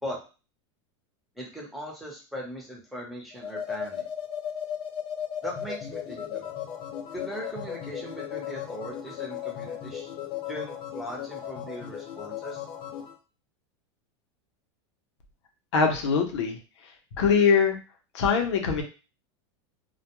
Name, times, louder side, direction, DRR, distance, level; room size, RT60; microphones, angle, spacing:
voice 1, 1.4-4.0 5.4-6.5 7.1-10.1 10.5-12.6, equal, ahead, -3 dB, 0.9 m, -39 dB
sound 1, 3.3-13.1, left 9 dB, 35° left, 0.5 m, -36 dB
voice 2, 15.7-16.6 17.2-17.8 18.1-18.8, left 6 dB, 85° left, 3 dB, 0.7 m, -22 dB
2.2 x 2.2 x 3.0 m, 0.33 s
supercardioid pair, 125°, 15 cm